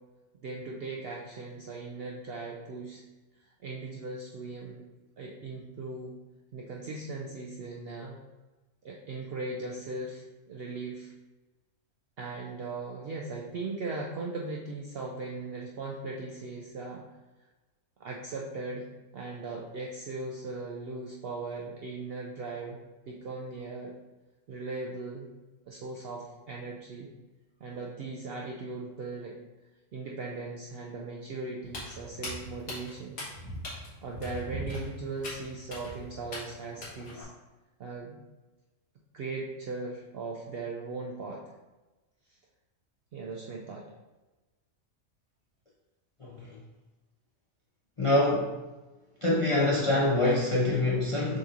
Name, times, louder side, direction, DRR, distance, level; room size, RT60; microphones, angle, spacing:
voice 1, 0.4-3.0 3.6-4.9 5.2-6.1 6.5-8.2 8.8-11.1 12.2-17.0 18.0-18.9 19.1-22.8 23.1-23.9 24.5-25.3 25.7-27.1 27.6-29.4 29.9-33.2 34.0-37.3 37.8-38.2 39.1-41.4 43.1-43.9, right 3 dB, 70° right, -1 dB, 0.6 m, -38 dB
Walk footsteps, 31.6-37.2, left 1 dB, 85° left, 1.7 m, -41 dB
voice 2, 48.0-48.6 49.2-51.4, left 2 dB, 40° left, -5 dB, 0.4 m, -25 dB
6.4 x 2.9 x 2.5 m, 1.1 s
omnidirectional pair, 1.5 m